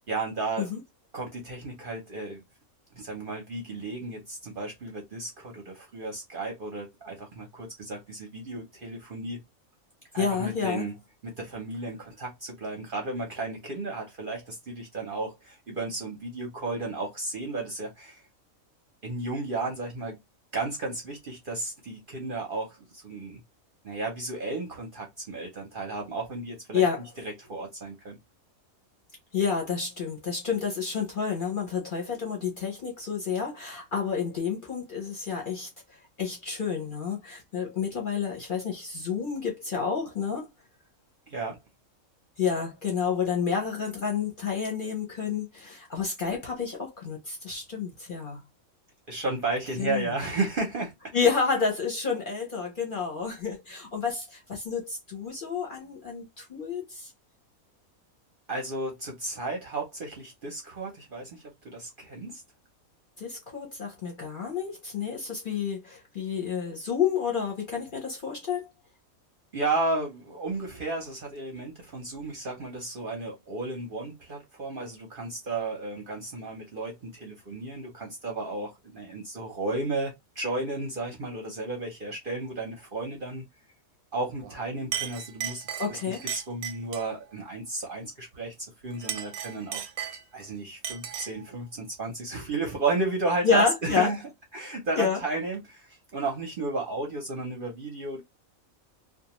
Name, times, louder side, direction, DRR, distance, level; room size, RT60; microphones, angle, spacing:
voice 1, 0.1-0.7 1.1-2.4 2.9-9.4 10.1-11.0 11.2-18.2 19.0-20.2 20.5-23.4 23.8-26.8 27.2-28.2 41.3-41.6 49.1-51.3 58.5-62.4 69.5-83.5 84.1-88.5 88.8-94.2 94.5-98.2, right 2 dB, 50° right, 0.7 m, -33 dB
voice 2, 10.2-10.8 26.7-27.0 29.3-35.7 36.2-40.5 42.4-48.4 49.8-50.1 51.1-57.1 63.2-68.7 85.8-86.2 93.4-94.1 95.0-95.2, left 6 dB, 45° left, 0.7 m, -29 dB
Chink clink, 84.4-84.6 84.9-87.1 88.9-90.5 90.8-91.4, right 9 dB, 90° right, 1.1 m, -35 dB
2.4 x 2.2 x 2.9 m
omnidirectional pair, 1.5 m